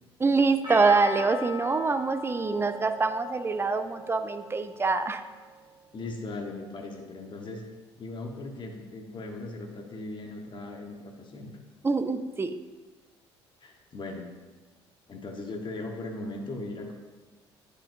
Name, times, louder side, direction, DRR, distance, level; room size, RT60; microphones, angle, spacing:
voice 1, 0.2-5.2 11.8-12.6, right 4 dB, 15° right, 10 dB, 0.5 m, -25 dB
Percussion, 0.6-5.1, equal, 35° right, 1.8 m, -39 dB
voice 2, 5.9-7.6 8.0-11.5 13.6-14.3 15.1-16.9, left 2 dB, 35° left, 2 dB, 1.2 m, -38 dB
10.0 x 4.9 x 2.6 m, 1.3 s
figure-of-eight pair, 55°, 14 cm